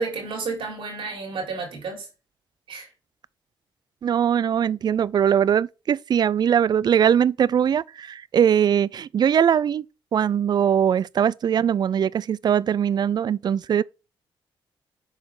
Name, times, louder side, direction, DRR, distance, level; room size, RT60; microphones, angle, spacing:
voice 1, 0.0-2.1 2.7-2.9, right 4 dB, 75° right, 3.8 m, -31 dB
voice 2, 4.0-9.8 10.1-13.8, right 8 dB, 50° right, 0.4 m, -21 dB
7.4 x 4.9 x 3.8 m
cardioid pair, 85°, 9 cm